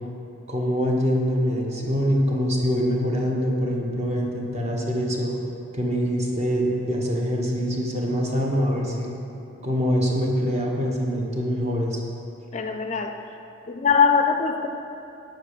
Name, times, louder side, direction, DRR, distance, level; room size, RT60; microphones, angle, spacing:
voice 1, 0.5-5.3 5.7-9.1 9.6-12.0, equal, 35° right, -1 dB, 1.1 m, -24 dB
voice 2, 12.5-13.2 13.7-14.7, left 6 dB, 35° left, 5 dB, 0.4 m, -21 dB
8.5 x 5.2 x 6.5 m, 2.8 s
head